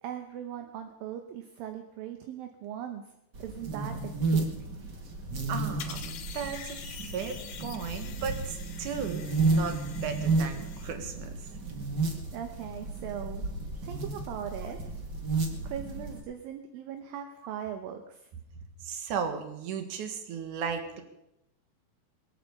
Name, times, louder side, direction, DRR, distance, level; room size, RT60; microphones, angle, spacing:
voice 1, 0.0-3.0 3.4-4.0 4.3-4.7 12.3-13.5 13.8-14.8 15.6-18.2, right 9 dB, 70° right, 6 dB, 2.4 m, -39 dB
sound 1, 3.3-16.2, right 3 dB, 40° right, 1.6 m, -32 dB
voice 2, 5.5-11.3 18.8-21.0, right 6 dB, 55° right, 7 dB, 2.8 m, -36 dB
sound 2, 5.8-10.9, left 8 dB, 65° left, 2.4 m, -45 dB
22.0 x 8.7 x 7.1 m, 0.85 s
omnidirectional pair, 4.8 m